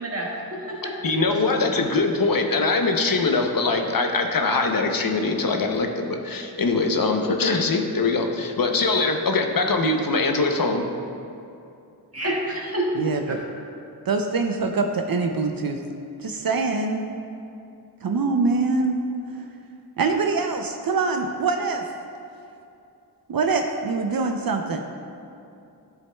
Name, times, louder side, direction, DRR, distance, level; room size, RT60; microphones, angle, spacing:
voice 1, 0.0-0.9 1.3-1.5 12.1-13.4, right 1 dB, 35° right, -3 dB, 1.6 m, -28 dB
voice 2, 1.0-10.9, left 3 dB, 60° left, 4 dB, 0.7 m, -22 dB
voice 3, 12.9-13.4 14.1-15.8 16.2-17.2 18.0-19.0 20.0-21.8 23.3-24.9, right 4 dB, 60° right, 4 dB, 0.5 m, -24 dB
10.5 x 7.2 x 2.2 m, 2.6 s
wide cardioid pair, 60°, 40 cm